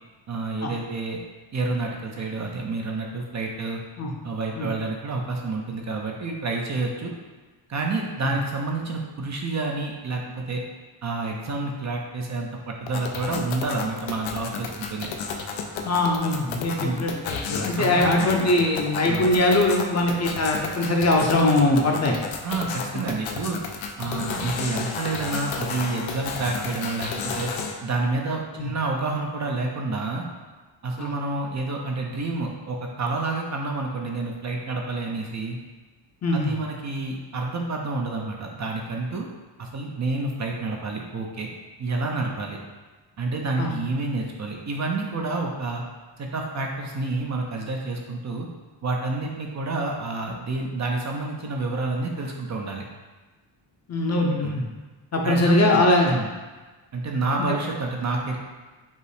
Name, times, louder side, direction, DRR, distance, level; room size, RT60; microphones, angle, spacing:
voice 1, 0.3-1.2 1.5-3.8 4.2-7.2 7.7-10.6 11.0-15.1 16.8-17.0 17.8-18.5 19.1-19.3 22.4-23.6 24.0-27.5 27.8-30.2 30.8-35.6 36.3-39.3 39.6-41.5 41.8-42.6 43.2-45.8 46.2-48.5 48.8-52.8 54.4-54.6 55.2-56.3 56.9-58.4, right 3 dB, 40° right, 1 dB, 0.5 m, -29 dB
sound 1, 12.8-27.7, left 5 dB, 85° left, 0.6 m, -32 dB
voice 2, 15.8-22.2 22.9-23.1 24.0-24.2 28.6-28.7 31.0-31.1 36.2-36.5 43.6-43.7 53.9-54.7 55.1-56.1, left 2 dB, 35° left, 0 dB, 0.6 m, -22 dB
5.4 x 2.0 x 4.8 m, 1.2 s
cardioid pair, 125°, 46 cm